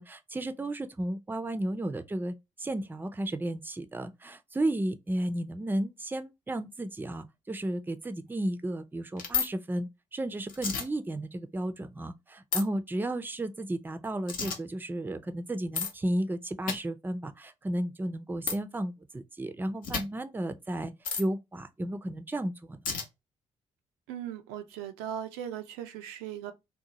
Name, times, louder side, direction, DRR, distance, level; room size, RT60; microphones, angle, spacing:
voice 1, 0.0-20.9 21.2-22.8, right 1 dB, 15° right, 0.4 m, -33 dB
sound 1, 9.2-9.5 10.5-10.8 12.5-12.6 14.3-14.6 15.7-15.9 16.7-16.8 18.5-18.6 19.8-20.0 21.0-21.2 22.8-23.0, left 6 dB, 65° left, 0.7 m, -30 dB
voice 2, 24.1-26.5, right 10 dB, 75° right, 0.4 m, -38 dB
2.7 x 2.0 x 2.8 m
hypercardioid pair, 40°, 16 cm